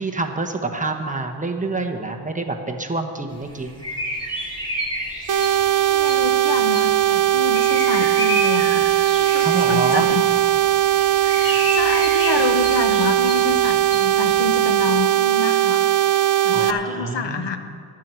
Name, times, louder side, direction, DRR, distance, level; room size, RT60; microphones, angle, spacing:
voice 1, 0.0-3.7 9.4-10.1 16.5-17.5, right 3 dB, 20° right, 3 dB, 0.9 m, -27 dB
sound 1, 3.3-14.9, equal, 10° left, 2.4 m, -31 dB
sound 2, 5.3-16.7, right 12 dB, 45° right, 0.6 m, -19 dB
voice 2, 5.9-8.8 9.2-10.3 11.2-15.9 16.4-17.6, left 6 dB, 80° left, 8 dB, 1.0 m, -28 dB
12.0 x 7.4 x 7.5 m, 2.5 s
wide cardioid pair, 140°, 42 cm